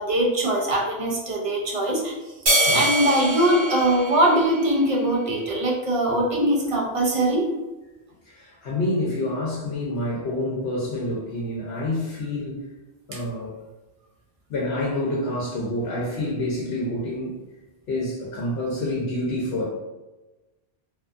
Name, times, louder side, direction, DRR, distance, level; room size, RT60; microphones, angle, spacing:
voice 1, 0.0-2.2 2.7-7.5 13.1-13.2, right 1 dB, 40° right, -3 dB, 0.5 m, -22 dB
sound 1, 2.5-5.1, right 1 dB, 80° right, 1.1 m, -24 dB
voice 2, 8.3-12.6 13.1-13.6 14.5-17.3 17.9-19.7, left 1 dB, 75° left, -5 dB, 0.9 m, -27 dB
2.6 x 2.2 x 2.4 m, 1.1 s
omnidirectional pair, 1.1 m